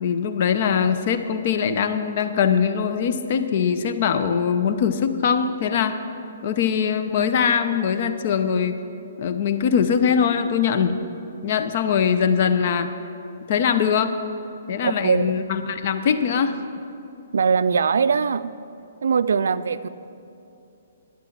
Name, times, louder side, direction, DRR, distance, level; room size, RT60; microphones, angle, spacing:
voice 1, 0.0-6.0 6.4-8.8 9.2-10.9 11.4-12.9 13.5-14.1 14.7-16.6, left 7 dB, 50° left, 10 dB, 0.7 m, -22 dB
voice 2, 14.8-15.4 17.3-18.5 19.0-19.9, right 6 dB, 70° right, 13 dB, 0.3 m, -21 dB
11.5 x 9.7 x 5.9 m, 2.7 s
hypercardioid pair, 130°, 0 cm